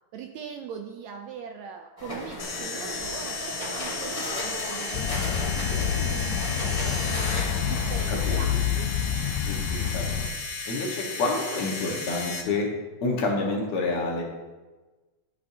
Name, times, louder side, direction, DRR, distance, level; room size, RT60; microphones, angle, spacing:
voice 1, 0.1-8.9, right 7 dB, 80° right, 4 dB, 1.7 m, -41 dB
sound 1, 2.0-8.4, left 1 dB, 25° left, 0.8 m, -36 dB
sound 2, 2.4-12.4, left 3 dB, 45° left, 1.3 m, -34 dB
sound 3, 4.9-10.3, left 9 dB, 85° left, 2.1 m, -28 dB
voice 2, 8.1-8.6 9.5-10.1 10.7-12.7 13.0-14.2, left 3 dB, 65° left, -2 dB, 2.4 m, -28 dB
12.0 x 8.4 x 2.8 m, 1.2 s
omnidirectional pair, 3.6 m